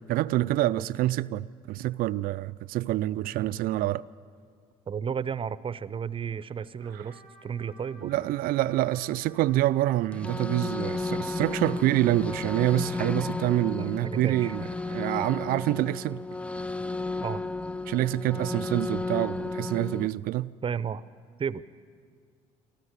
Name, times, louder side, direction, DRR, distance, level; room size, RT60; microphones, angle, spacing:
voice 1, 0.0-4.0 6.9-7.0 8.0-16.2 17.9-20.5, right 15 dB, 65° right, 0.4 m, -27 dB
voice 2, 4.9-8.3 13.7-14.6 17.2-17.4 20.6-21.0 21.4-21.6, right 7 dB, 35° right, 0.7 m, -33 dB
Trumpet, 6.8-13.0, equal, 35° left, 3.8 m, -53 dB
sound 1, 10.1-20.1, left 3 dB, 5° left, 0.4 m, -33 dB
25.0 x 13.5 x 8.2 m
hypercardioid pair, 60°, 16 cm